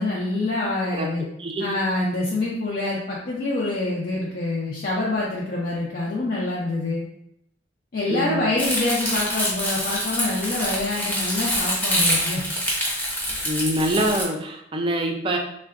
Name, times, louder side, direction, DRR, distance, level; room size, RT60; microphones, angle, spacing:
voice 1, 0.0-1.2 1.6-7.0 7.9-12.4, left 2 dB, 55° left, -4 dB, 0.4 m, -26 dB
voice 2, 8.1-8.6 13.4-15.4, right 1 dB, 30° right, 2 dB, 0.3 m, -25 dB
Crumpling crinkling, 8.6-14.3, equal, 10° left, 0.6 m, -25 dB
3.6 x 2.1 x 2.4 m, 0.76 s
head